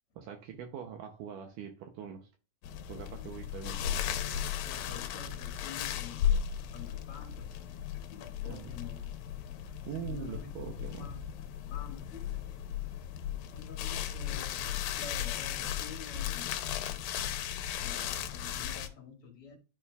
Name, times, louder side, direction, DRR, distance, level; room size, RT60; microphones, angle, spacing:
voice 1, 0.2-2.3 2.9-3.8 8.4-8.7 9.9-11.1, right 9 dB, 75° right, 2.3 m, -42 dB
sound 1, 2.6-18.9, left 10 dB, 85° left, 2.5 m, -36 dB
voice 2, 4.6-6.4 6.7-7.8 8.1-9.1 9.8-10.5 10.9-11.2 11.7-12.5 13.5-16.5 17.8-19.6, left 5 dB, 45° left, 2.3 m, -49 dB
11.0 x 5.8 x 2.4 m
omnidirectional pair, 4.1 m